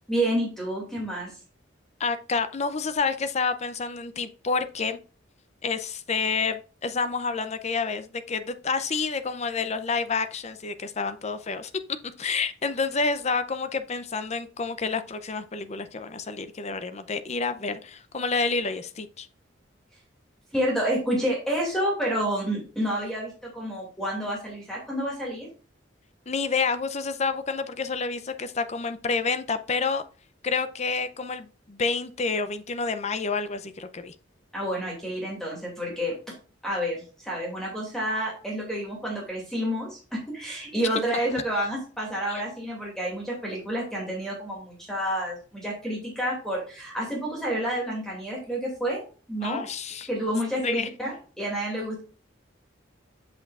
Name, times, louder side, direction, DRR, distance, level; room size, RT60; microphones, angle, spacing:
voice 1, 0.1-1.3 20.5-25.5 34.5-36.3 36.6-49.0 49.3-49.7 50.1-52.0, equal, 5° left, 2.4 m, -29 dB
voice 2, 2.0-5.0 5.6-11.7 12.2-19.3 26.3-30.0 30.4-34.1 42.3-42.4 49.4-50.1 50.6-50.9, left 4 dB, 35° left, 0.6 m, -29 dB
8.1 x 6.8 x 2.4 m
head